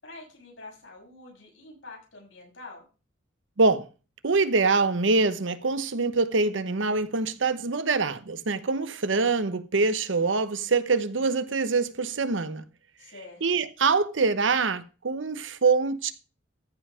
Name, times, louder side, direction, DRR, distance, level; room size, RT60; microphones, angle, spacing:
voice 1, 0.0-2.8 13.0-13.6, left 2 dB, 85° left, 6.3 m, -46 dB
voice 2, 4.2-12.6 13.4-16.1, right 4 dB, 80° right, 0.9 m, -24 dB
14.0 x 5.6 x 4.9 m
head